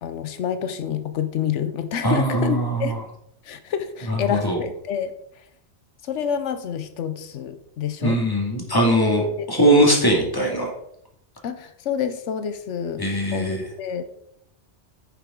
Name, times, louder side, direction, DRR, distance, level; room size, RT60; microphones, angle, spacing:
voice 1, 0.0-3.0 3.4-5.4 6.0-8.2 9.4-9.5 11.4-13.0 13.3-14.0, left 8 dB, 90° left, 10 dB, 1.1 m, -28 dB
voice 2, 2.0-3.0 4.1-4.6 8.0-10.7 13.0-13.6, right 1 dB, 20° left, 0 dB, 2.3 m, -20 dB
9.9 x 6.7 x 3.7 m, 0.73 s
omnidirectional pair, 1.2 m